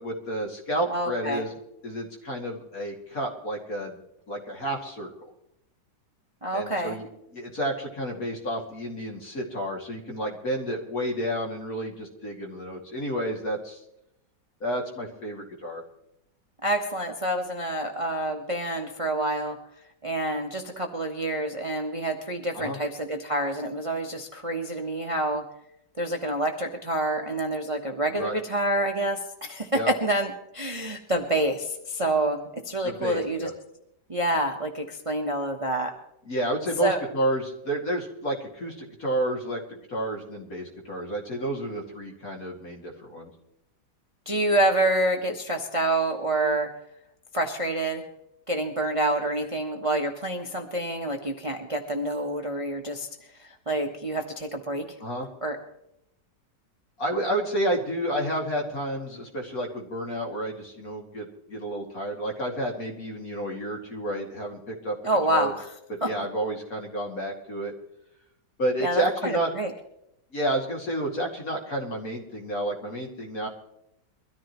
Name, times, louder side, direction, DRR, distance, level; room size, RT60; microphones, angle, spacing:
voice 1, 0.0-1.5 1.8-4.0 4.3-5.3 6.5-13.8 14.6-15.8 22.5-22.8 28.1-28.3 29.7-29.9 32.8-33.5 36.3-39.6 39.9-43.3 55.0-55.3 57.0-65.5 65.9-67.7 68.6-69.5 70.3-73.5, right 1 dB, 50° left, 0 dB, 2.8 m, -30 dB
voice 2, 0.9-1.4 6.4-7.0 16.6-19.6 20.0-25.4 26.0-33.5 34.1-35.9 36.8-37.0 44.3-46.7 47.3-48.0 48.5-53.1 53.4-54.9 55.4-55.6 65.0-65.7 66.0-66.1 68.8-69.7, right 1 dB, 25° right, 3 dB, 1.0 m, -27 dB
23.0 x 14.0 x 3.1 m, 0.80 s
omnidirectional pair, 1.9 m